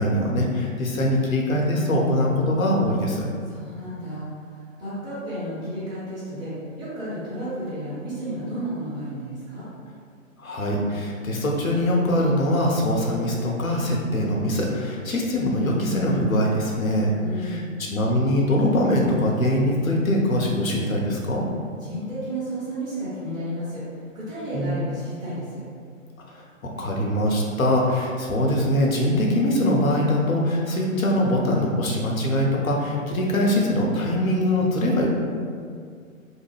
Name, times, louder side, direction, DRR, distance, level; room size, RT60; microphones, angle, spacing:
voice 1, 0.0-3.2 10.4-17.1 17.4-17.6 17.9-21.4 24.5-24.8 26.3-35.1, left 1 dB, 75° left, -2 dB, 0.7 m, -22 dB
voice 2, 3.5-9.7 17.2-17.8 21.8-23.8 24.1-25.6, right 1 dB, 10° right, -13 dB, 1.1 m, -32 dB
2.4 x 2.1 x 3.3 m, 2.1 s
figure-of-eight pair, 120°, 41 cm